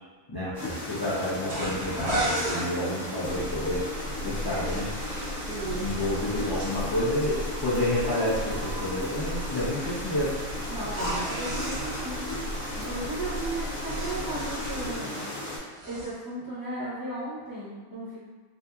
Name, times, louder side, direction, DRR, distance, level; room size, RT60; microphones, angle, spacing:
voice 1, 0.3-3.8 4.2-4.9 5.8-10.3, left 1 dB, 30° left, -11 dB, 0.4 m, -29 dB
sound 1, 0.5-15.6, left 1 dB, 60° left, 1.2 m, -36 dB
sound 2, 1.5-2.7 4.3-6.7 10.8-12.0 13.5-15.4 15.7-16.1, right 1 dB, 50° right, 1.0 m, -34 dB
sound 3, 3.2-15.0, equal, 85° right, 1.1 m, -37 dB
voice 2, 5.4-5.9 10.7-12.2 12.7-15.2 15.9-18.2, right 2 dB, 20° right, -12 dB, 0.8 m, -35 dB
2.7 x 2.6 x 2.3 m, 1.4 s
omnidirectional pair, 1.4 m